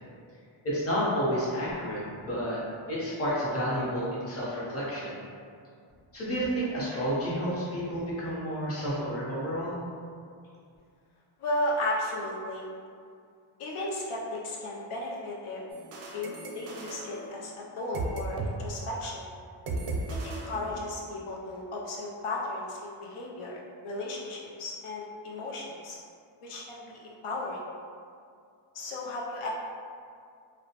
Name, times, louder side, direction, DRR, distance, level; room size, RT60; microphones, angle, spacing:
voice 1, 0.6-2.6 2.9-5.1 6.1-9.7, equal, 30° left, -7 dB, 0.7 m, -30 dB
voice 2, 11.4-12.7 13.6-15.6 16.1-19.2 20.2-26.0 26.4-27.6 28.7-29.5, left 1 dB, 85° left, -3 dB, 0.6 m, -35 dB
sound 1, 15.7-18.6 18.8-19.1 19.7-21.2, right 2 dB, 90° right, 0.6 m, -36 dB
2.8 x 2.1 x 2.8 m, 2.3 s
wide cardioid pair, 145°, 50 cm